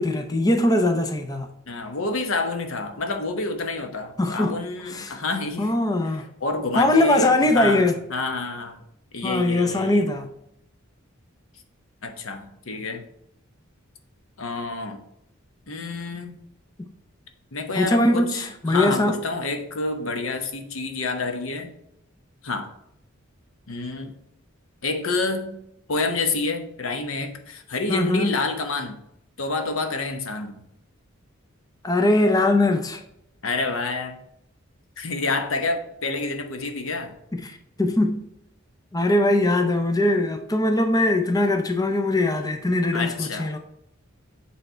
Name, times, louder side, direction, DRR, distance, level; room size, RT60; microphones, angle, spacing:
voice 1, 0.0-1.5 4.2-4.6 4.9-5.2 5.6-6.3 6.7-7.9 9.2-10.3 17.8-19.1 27.9-28.3 31.8-33.0 37.3-38.2 38.9-43.6, left 2 dB, 20° left, 0.5 m, -21 dB
voice 2, 1.7-5.7 6.4-8.8 9.1-10.1 12.0-13.0 14.4-15.0 15.7-16.3 17.5-21.7 22.4-22.7 23.7-24.1 24.8-25.5 25.9-29.0 29.4-30.6 33.4-34.2 35.0-37.1 42.9-43.5, left 3 dB, 75° left, 0.9 m, -28 dB
7.9 x 3.3 x 4.3 m
head